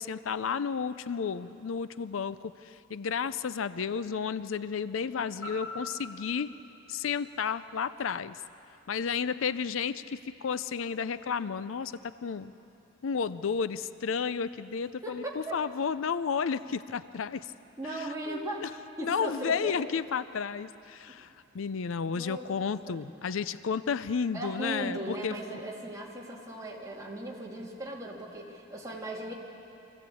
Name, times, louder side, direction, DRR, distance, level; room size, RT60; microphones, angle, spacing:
voice 1, 0.0-6.5 6.9-8.4 8.9-12.5 13.0-17.5 17.9-18.7 19.0-21.3 21.5-25.4, left 6 dB, 75° left, 15 dB, 0.5 m, -32 dB
sound 1, 5.4-9.5 9.9-10.0, left 1 dB, 60° left, 7.1 m, -46 dB
voice 2, 15.0-15.4 17.8-20.0 21.1-21.2 22.1-22.5 22.9-23.1 24.3-29.3, right 1 dB, 15° right, -3 dB, 2.6 m, -38 dB
23.5 x 15.0 x 8.5 m, 2.8 s
head